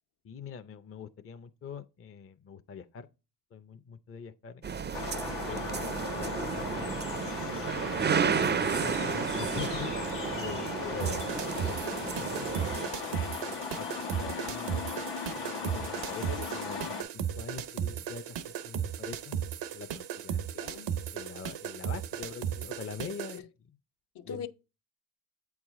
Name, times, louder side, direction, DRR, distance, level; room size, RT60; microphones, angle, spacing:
voice 1, 0.2-3.1 3.5-5.8 6.1-6.9 7.3-10.1 10.4-14.8 15.3-19.4 19.7-20.5 21.1-23.8 24.2-24.5, left 6 dB, 35° left, 0.5 m, -44 dB
sound 1, 4.6-12.9, right 6 dB, 25° right, 0.4 m, -32 dB
sound 2, 4.9-17.0, left 5 dB, 85° left, 1.3 m, -38 dB
voice 2, 10.8-11.7 16.2-16.5 20.5-20.9 23.3-23.5 24.1-24.5, left 6 dB, 70° left, 0.9 m, -42 dB
sound 3, 11.0-23.4, right 9 dB, 90° right, 0.7 m, -36 dB
8.2 x 4.8 x 3.6 m
cardioid pair, 90°, 42 cm